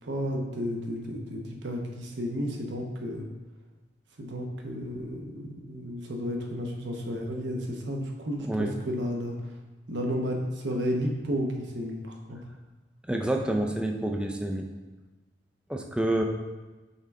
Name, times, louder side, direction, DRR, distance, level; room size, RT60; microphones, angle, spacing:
voice 1, 0.0-3.3 4.2-5.4 5.7-9.3 9.9-12.4, equal, 75° right, 1 dB, 0.9 m, -32 dB
voice 2, 8.4-8.8 13.1-14.7 15.7-16.2, right 1 dB, 5° right, 2 dB, 0.4 m, -28 dB
5.6 x 4.6 x 3.6 m, 1.2 s
head